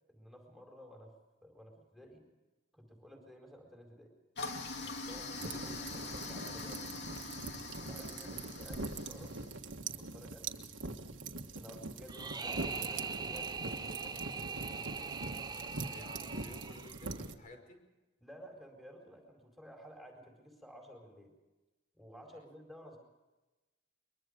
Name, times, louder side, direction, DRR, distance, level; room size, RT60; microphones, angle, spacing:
voice 1, 0.1-1.1 1.4-2.2 2.7-4.1 4.8-6.8 7.8-9.3 9.9-11.0 11.5-15.1 18.2-21.3 21.9-23.0, equal, ahead, 2 dB, 4.3 m, -54 dB
Toilet flush, 4.4-9.6, left 3 dB, 65° left, 2.9 m, -43 dB
sound 1, 5.3-17.3, right 3 dB, 80° right, 1.6 m, -43 dB
sound 2, 12.1-17.2, right 5 dB, 20° right, 0.8 m, -41 dB
voice 2, 15.9-17.8 22.3-22.4, left 1 dB, 45° left, 4 dB, 5.5 m, -54 dB
23.0 x 23.0 x 5.2 m, 1.1 s
head